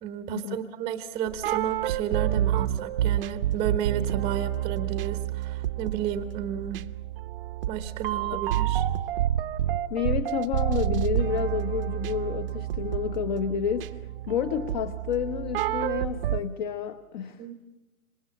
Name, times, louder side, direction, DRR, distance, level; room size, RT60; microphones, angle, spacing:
voice 1, 0.0-6.8 7.7-8.9 17.4-17.5, right 9 dB, 15° right, 9 dB, 0.9 m, -32 dB
sound 1, 1.3-16.4, right 12 dB, 40° right, 0.8 m, -29 dB
voice 2, 9.9-17.4, left 8 dB, 30° left, 11 dB, 0.9 m, -30 dB
27.5 x 25.0 x 7.2 m, 1.0 s
hypercardioid pair, 150°, 43 cm